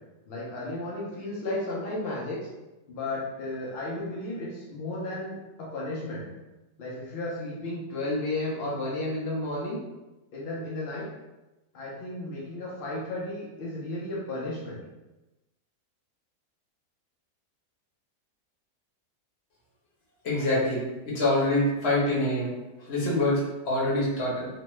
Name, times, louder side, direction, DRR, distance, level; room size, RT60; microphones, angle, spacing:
voice 1, 0.3-2.4 2.9-6.3 6.8-9.8 10.3-11.1 11.7-14.8, left 2 dB, 65° left, -5 dB, 0.6 m, -33 dB
voice 2, 20.2-22.5 22.8-24.5, left 1 dB, 50° left, -5 dB, 1.0 m, -25 dB
2.9 x 2.2 x 3.0 m, 1.0 s
omnidirectional pair, 1.7 m